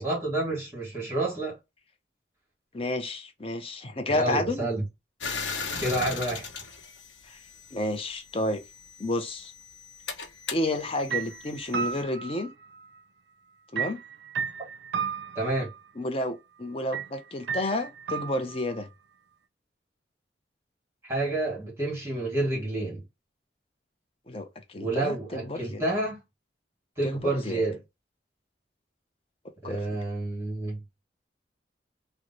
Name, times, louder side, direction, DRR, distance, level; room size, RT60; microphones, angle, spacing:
voice 1, 0.0-1.6 4.1-4.8 5.8-6.5 15.3-15.7 21.0-23.0 24.8-26.2 27.0-27.8 29.6-30.8, right 2 dB, 15° right, 1.4 m, -29 dB
voice 2, 2.7-4.7 7.3-7.4 7.7-8.6 9.0-9.5 10.5-12.5 13.7-14.0 16.0-18.9 24.3-25.8 27.0-27.6 29.6-29.8, left 1 dB, 30° left, 0.5 m, -31 dB
sound 1, 5.2-7.9 8.8-12.0, left 5 dB, 85° left, 0.8 m, -37 dB
sound 2, 10.7-10.9 11.1-13.0 13.8-15.8 16.9-17.1 17.5-18.8, right 7 dB, 70° right, 0.4 m, -34 dB
3.1 x 2.1 x 3.8 m
head